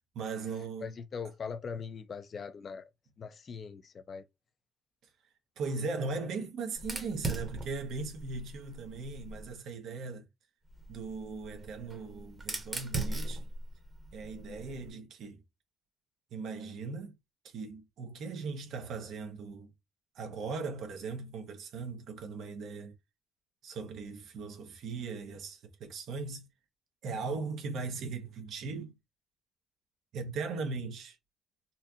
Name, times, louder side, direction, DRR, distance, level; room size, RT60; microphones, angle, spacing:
voice 1, 0.1-0.9 5.6-10.3 10.9-13.5 14.1-15.4 16.3-17.2 17.4-19.7 20.1-22.9 23.6-26.5 27.0-28.9 30.1-31.2, right 4 dB, 70° right, 1.1 m, -38 dB
voice 2, 0.8-2.9 3.2-4.3, left 5 dB, 40° left, 0.6 m, -41 dB
Fire, 6.8-9.5 10.7-14.9, right 2 dB, 25° right, 1.2 m, -39 dB
4.2 x 2.4 x 2.8 m
cardioid pair, 115°, 0 cm